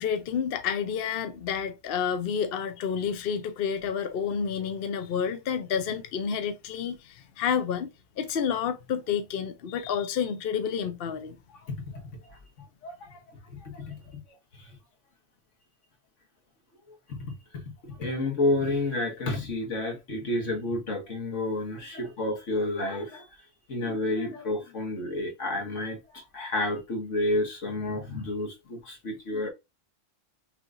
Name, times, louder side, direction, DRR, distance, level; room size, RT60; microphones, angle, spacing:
voice 1, 0.0-11.4, left 7 dB, 60° left, 0.8 m, -29 dB
voice 2, 11.6-12.0 12.3-14.2 14.5-14.7 17.1-23.3 23.7-29.5, left 2 dB, 85° left, 1.8 m, -31 dB
5.8 x 3.4 x 2.5 m
omnidirectional pair, 1.2 m